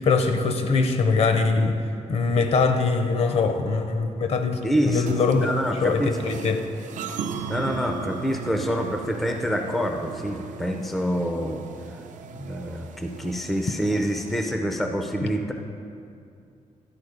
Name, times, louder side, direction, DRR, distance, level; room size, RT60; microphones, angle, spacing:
voice 1, 0.0-1.8 2.1-5.5 5.8-6.6 15.2-15.3, left 4 dB, 50° left, 6 dB, 0.6 m, -22 dB
voice 2, 4.6-6.1 7.5-11.6 12.3-15.5, equal, ahead, 4 dB, 0.3 m, -27 dB
sound 1, 5.1-14.4, right 5 dB, 70° right, 0.4 m, -37 dB
11.0 x 4.2 x 4.9 m, 2.4 s
wide cardioid pair, 170°, 13 cm